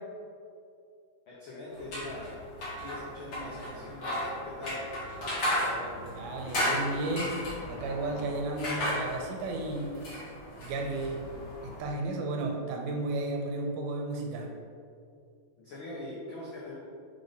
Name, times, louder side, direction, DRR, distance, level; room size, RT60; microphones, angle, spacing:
voice 1, 1.3-4.9 15.6-16.8, left 2 dB, 75° left, -6 dB, 1.1 m, -42 dB
sound 1, 1.7-11.8, equal, 45° left, 1.9 m, -35 dB
voice 2, 5.6-7.4 7.7-9.9 10.6-11.2 11.8-14.5, right 2 dB, 80° right, 1 dB, 2.2 m, -33 dB
5.1 x 4.1 x 5.1 m, 2.4 s
omnidirectional pair, 3.6 m